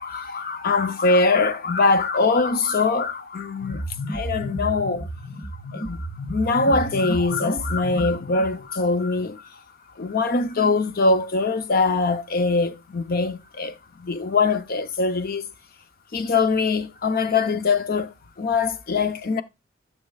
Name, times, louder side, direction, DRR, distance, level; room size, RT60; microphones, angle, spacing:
voice 1, 0.0-5.1 5.7-9.4 10.0-15.5 16.1-19.4, left 3 dB, 50° left, 0.6 m, -23 dB
sound 1, 3.6-8.6, right 1 dB, 65° left, 1.9 m, -32 dB
13.0 x 6.4 x 2.3 m
head